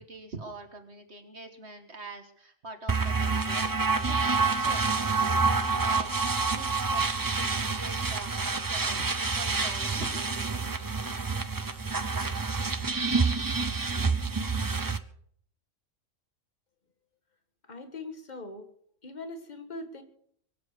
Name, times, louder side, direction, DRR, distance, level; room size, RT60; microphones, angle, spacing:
voice 1, 0.0-8.4 8.6-10.8, right 3 dB, 50° right, 6 dB, 1.8 m, -45 dB
sound 1, 2.9-15.0, right 4 dB, 30° right, 0.4 m, -28 dB
voice 2, 17.7-18.7 19.0-20.0, left 2 dB, 35° left, 8 dB, 1.8 m, -41 dB
23.0 x 7.8 x 6.7 m, 0.64 s
omnidirectional pair, 1.4 m